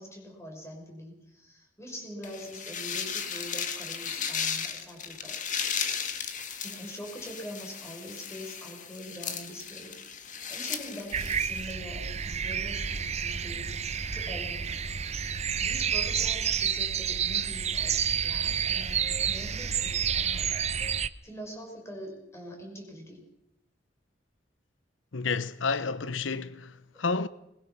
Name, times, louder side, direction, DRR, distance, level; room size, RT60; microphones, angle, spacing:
voice 1, 0.0-5.6 6.6-10.0 10.3-14.8 15.6-21.0 21.2-23.3, equal, 15° left, 6.2 m, -44 dB
sound 1, 2.2-11.7, left 7 dB, 40° left, 1.9 m, -35 dB
sound 2, 11.1-21.1, right 7 dB, 35° right, 0.7 m, -29 dB
voice 2, 25.1-27.3, left 4 dB, 90° left, 0.9 m, -31 dB
22.0 x 21.0 x 6.0 m
head